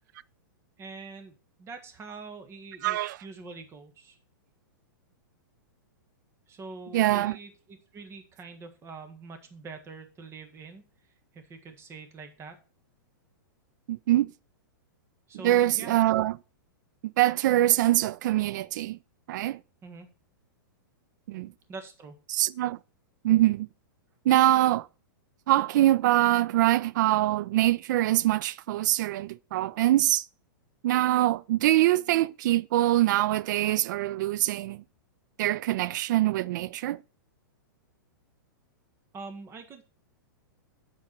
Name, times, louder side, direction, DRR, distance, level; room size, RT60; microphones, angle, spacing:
voice 1, 0.8-4.2 6.5-10.8 11.3-12.6 15.3-16.0 19.8-20.1 21.7-22.2 39.1-39.8, right 4 dB, 20° right, 1.4 m, -44 dB
voice 2, 2.8-3.2 6.9-7.4 13.9-14.3 15.4-16.4 17.0-19.0 19.3-19.6 21.3-21.5 22.3-22.8 23.2-23.7 24.3-24.9 25.5-30.2 30.8-34.8 35.4-37.0, right 15 dB, 60° right, 0.4 m, -24 dB
7.5 x 4.6 x 5.8 m
hypercardioid pair, 125°, 12 cm